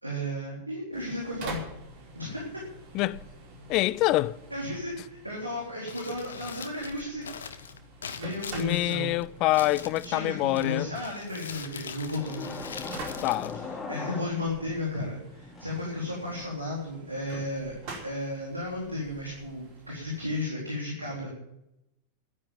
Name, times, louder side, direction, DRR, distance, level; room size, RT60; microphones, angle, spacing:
voice 1, 0.0-1.6 2.1-2.5 4.5-7.2 8.2-9.1 10.0-12.6 13.9-17.7 18.0-21.3, left 1 dB, 85° right, 3.8 m, -34 dB
sound 1, 0.9-20.5, right 2 dB, 45° right, 5.1 m, -47 dB
voice 2, 2.9-3.3 3.7-4.4 8.6-10.9 12.8-12.9 13.2-13.6, left 18 dB, 40° left, 0.5 m, -26 dB
Crumpling crinkling, 5.7-14.3, left 6 dB, 65° left, 1.1 m, -43 dB
sound 2, 8.9-10.9 12.2-14.8 15.3-16.4, left 3 dB, 20° left, 4.2 m, -41 dB
12.0 x 9.8 x 9.0 m
figure-of-eight pair, 90°, 0 cm